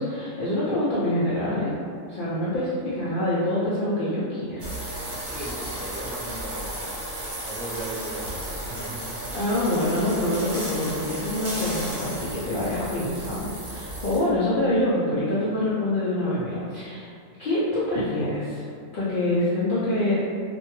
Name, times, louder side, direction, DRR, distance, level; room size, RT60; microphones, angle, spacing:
voice 1, 0.0-1.7 2.1-4.7 9.3-17.1 17.4-18.7 18.9-20.2, left 1 dB, 70° left, -9 dB, 0.5 m, -25 dB
sound 1, 4.6-14.2, right 1 dB, 50° right, 0.9 m, -34 dB
voice 2, 5.1-6.9 7.4-9.2, right 1 dB, ahead, -11 dB, 0.4 m, -37 dB
2.5 x 2.1 x 3.0 m, 2.3 s
omnidirectional pair, 1.4 m